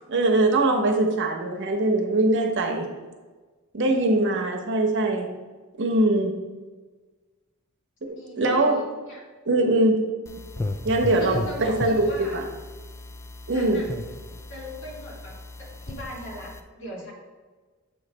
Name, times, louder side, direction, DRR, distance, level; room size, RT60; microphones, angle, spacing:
voice 1, 0.1-2.9 3.7-5.3 5.8-6.3 8.4-8.9 9.5-10.0 10.8-12.5 13.5-13.8, right 2 dB, 55° right, 2 dB, 0.8 m, -22 dB
voice 2, 8.1-9.2 11.0-12.4 13.5-13.9 14.5-17.1, equal, 65° left, -5 dB, 2.1 m, -40 dB
sound 1, 10.3-16.6, left 2 dB, 15° left, 0.3 m, -36 dB
7.3 x 3.1 x 5.3 m, 1.3 s
head